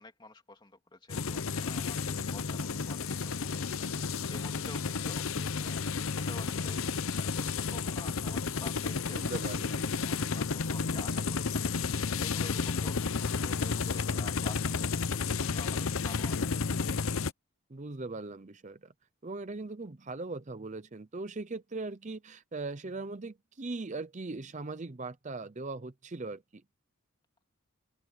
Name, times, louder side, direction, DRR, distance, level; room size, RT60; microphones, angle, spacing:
voice 1, 0.0-9.3 9.8-11.6 11.9-16.4, left 2 dB, 20° left, 3.0 m, -50 dB
sound 1, 1.1-17.3, left 5 dB, 70° left, 0.7 m, -32 dB
voice 2, 9.1-9.9 17.7-18.9 19.2-26.6, right 3 dB, 35° right, 0.6 m, -40 dB
open air
head